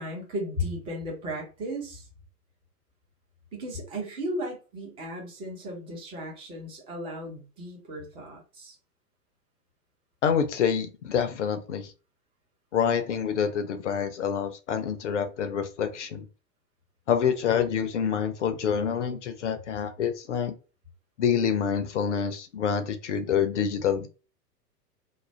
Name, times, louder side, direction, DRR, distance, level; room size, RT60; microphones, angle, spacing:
voice 1, 0.0-2.1 3.5-8.7, equal, 10° right, -1 dB, 0.6 m, -35 dB
voice 2, 10.2-11.9 12.7-16.3 17.1-20.5 21.2-24.1, left 7 dB, 50° left, 9 dB, 0.5 m, -27 dB
2.3 x 2.1 x 3.2 m, 0.34 s
figure-of-eight pair, 105°, 49 cm